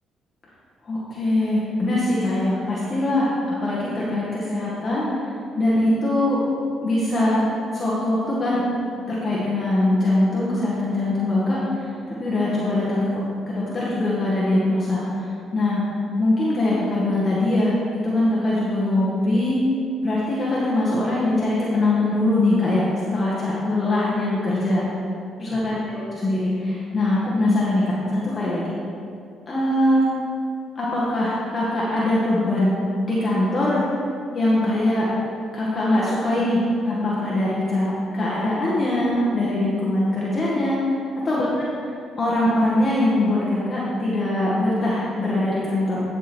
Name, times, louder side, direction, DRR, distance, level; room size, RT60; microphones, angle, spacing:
voice 1, 0.9-3.3 3.6-5.1 5.6-6.4 6.8-7.4 7.7-8.6 9.1-15.8 16.2-19.6 20.0-24.8 25.4-28.7 29.5-30.1 30.8-32.7 33.0-33.8 34.3-35.1 35.5-41.0 41.2-41.5 42.2-46.0, left 1 dB, 40° left, -7 dB, 1.8 m, -22 dB
11.0 x 5.5 x 4.5 m, 2.5 s
cardioid pair, 80°, 0 cm